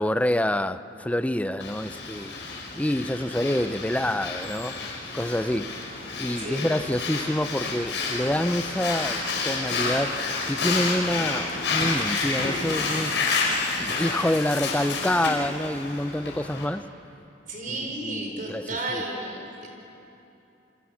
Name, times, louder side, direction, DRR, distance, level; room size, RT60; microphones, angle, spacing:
voice 1, 0.0-2.3 2.8-5.8 6.2-10.2 10.5-13.3 13.8-16.8 17.7-17.8 18.0-18.6 18.9-19.0, left 1 dB, 10° left, 11 dB, 0.6 m, -27 dB
Breathing, 1.6-16.6, left 3 dB, 75° left, 5.5 m, -30 dB
voice 2, 6.4-6.7 17.5-19.7, right 2 dB, 45° right, 1 dB, 5.3 m, -33 dB
28.0 x 24.5 x 7.3 m, 2.8 s
head